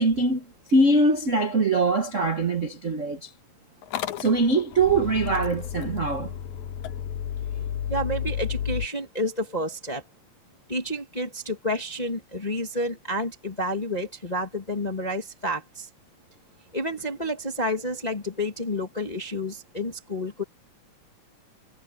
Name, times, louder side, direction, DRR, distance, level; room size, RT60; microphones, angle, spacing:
voice 1, 0.0-3.3 4.2-6.3 7.6-7.7, right 2 dB, 55° right, 0.8 m, -23 dB
Motor vehicle (road) / Engine starting, 3.8-8.9, left 9 dB, 70° left, 2.2 m, -32 dB
voice 2, 7.9-10.0 10.7-15.9 16.7-20.4, left 1 dB, 20° left, 1.0 m, -30 dB
omnidirectional pair, 3.8 m